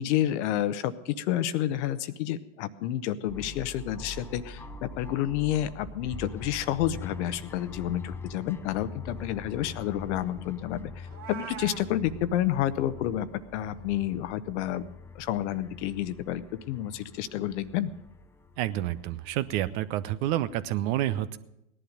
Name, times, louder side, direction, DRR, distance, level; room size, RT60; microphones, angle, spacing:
voice 1, 0.0-14.9 15.1-16.4 16.7-17.9, left 12 dB, 60° left, 14 dB, 0.9 m, -30 dB
sound 1, 3.3-20.8, left 3 dB, 5° left, 0.5 m, -44 dB
Meow, 11.0-11.9, right 9 dB, 35° right, 2.2 m, -40 dB
voice 2, 18.6-21.4, right 13 dB, 50° right, 14 dB, 0.9 m, -29 dB
17.5 x 11.0 x 5.2 m, 0.85 s
hypercardioid pair, 105°, 40 cm